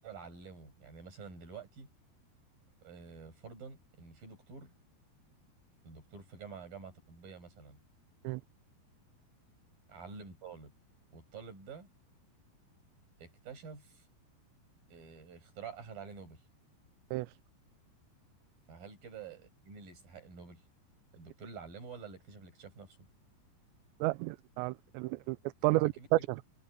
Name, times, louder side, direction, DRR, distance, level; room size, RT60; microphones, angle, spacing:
voice 1, 0.0-1.9 2.8-4.7 5.8-7.8 9.9-10.7 11.1-11.9 13.2-14.1 14.9-16.4 18.7-20.6 21.1-23.0 25.7-26.1, right 5 dB, 50° right, 9.6 m, -49 dB
voice 2, 24.0-25.4 25.6-26.4, right 20 dB, 85° right, 2.9 m, -31 dB
omnidirectional pair, 5.1 m